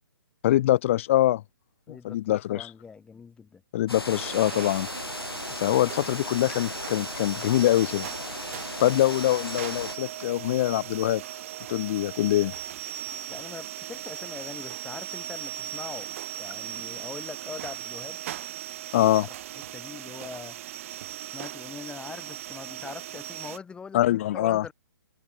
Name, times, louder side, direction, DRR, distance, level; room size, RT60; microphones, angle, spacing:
voice 1, 0.4-1.4 1.9-2.7 3.7-4.9 5.5-8.1 8.8-11.2 11.7-12.5 18.9-19.3 23.9-24.6, left 14 dB, 35° left, 1.6 m, -24 dB
voice 2, 1.9-3.6 13.3-18.2 19.0-19.3 19.7-20.6 21.3-24.7, left 5 dB, 10° left, 3.9 m, -42 dB
sound 1, 3.9-10.0, left 2 dB, 85° left, 1.2 m, -37 dB
sound 2, 4.0-23.6, right 13 dB, 35° right, 3.3 m, -38 dB
figure-of-eight pair, 130°, 12 cm